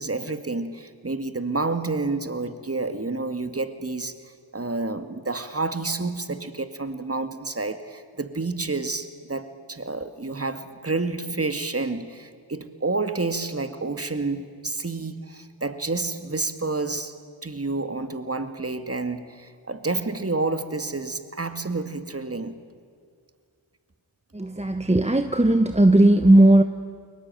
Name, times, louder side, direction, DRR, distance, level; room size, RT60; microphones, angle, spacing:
voice 1, 0.0-17.1 17.4-22.6, right 3 dB, 30° right, 9 dB, 2.2 m, -29 dB
voice 2, 24.3-26.6, right 1 dB, 15° right, 8 dB, 1.2 m, -17 dB
30.0 x 21.5 x 9.1 m, 2.1 s
cardioid pair, 45°, 49 cm